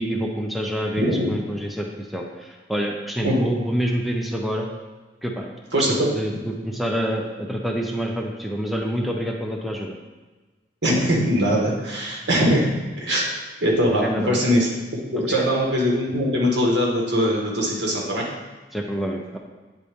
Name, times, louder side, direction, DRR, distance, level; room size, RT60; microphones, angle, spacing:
voice 1, 0.0-4.7 5.2-5.5 5.8-10.0 13.9-14.4 15.2-15.5 18.7-19.4, equal, ahead, 0 dB, 0.5 m, -27 dB
voice 2, 1.0-1.3 3.2-3.4 5.7-6.1 10.8-13.3 13.6-14.7 15.1-18.3, equal, 70° right, -2 dB, 1.5 m, -21 dB
8.5 x 4.1 x 3.5 m, 1.3 s
head